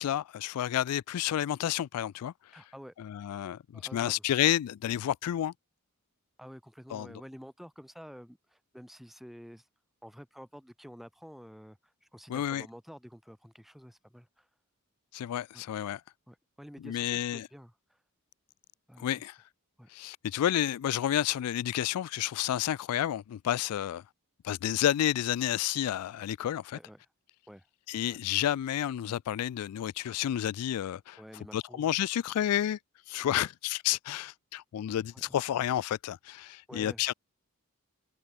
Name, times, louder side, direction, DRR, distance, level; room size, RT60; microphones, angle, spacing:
voice 1, 0.0-2.3 3.0-5.5 6.9-7.1 12.3-12.7 15.1-16.0 16.8-17.5 19.0-19.4 19.9-24.0 24.4-26.8 27.9-31.2 31.5-32.8 33.1-37.1, left 11 dB, 85° left, 0.3 m, -30 dB
voice 2, 2.5-2.9 3.7-4.2 6.4-9.7 10.0-14.5 15.5-15.7 16.3-18.0 18.9-19.2 19.8-19.9 26.7-27.1 27.5-27.7 28.1-28.2 31.2-31.9 33.3-33.5 35.1-35.4 36.7-37.0, equal, ahead, 5.1 m, -50 dB
head